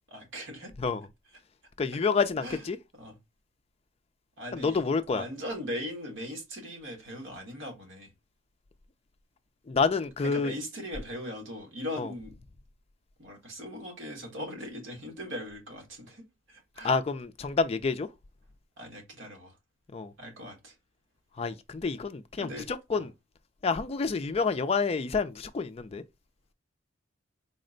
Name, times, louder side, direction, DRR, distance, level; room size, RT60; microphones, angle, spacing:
voice 1, 0.1-0.7 2.4-2.6 2.9-3.2 4.4-4.9 5.1-8.1 10.2-12.3 13.2-16.9 18.8-19.6 20.2-20.8 22.4-23.1, equal, 70° right, 1.4 m, -39 dB
voice 2, 1.8-2.8 4.5-5.2 9.7-10.5 12.0-12.1 16.8-18.1 19.9-20.1 21.4-23.1 23.6-26.0, left 4 dB, 30° left, 0.3 m, -28 dB
4.2 x 2.1 x 3.8 m
head